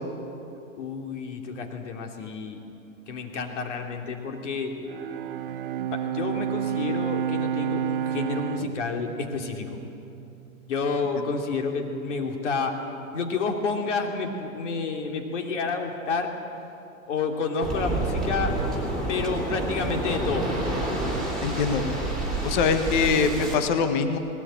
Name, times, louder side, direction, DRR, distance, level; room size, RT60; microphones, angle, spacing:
voice 1, 0.8-2.6 3.1-4.7 5.9-9.7 10.7-12.8 13.1-16.3 17.1-18.6 19.1-20.5 23.0-23.7, left 4 dB, 55° left, 3 dB, 3.1 m, -30 dB
Bowed string instrument, 4.8-10.3, right 9 dB, 40° right, 0.7 m, -30 dB
Waves surf, 17.6-23.5, right 2 dB, ahead, 3.3 m, -28 dB
voice 2, 21.4-21.8 22.4-24.2, left 5 dB, 35° left, 8 dB, 1.4 m, -23 dB
20.0 x 18.5 x 9.0 m, 2.9 s
hypercardioid pair, 165°, 42 cm